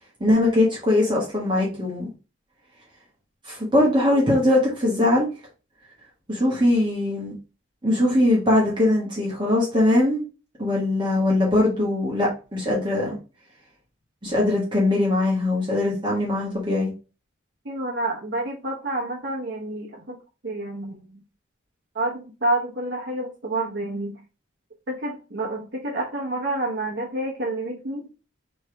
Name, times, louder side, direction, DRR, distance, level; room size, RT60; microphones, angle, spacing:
voice 1, 0.2-2.1 3.4-5.3 6.3-7.3 7.8-10.2 10.6-13.2 14.2-16.9, left 1 dB, 25° right, -4 dB, 1.4 m, -21 dB
voice 2, 17.6-20.2 20.4-21.2 21.9-24.2 24.9-28.1, right 2 dB, 65° right, -2 dB, 0.9 m, -28 dB
3.4 x 3.2 x 4.5 m, 0.32 s
head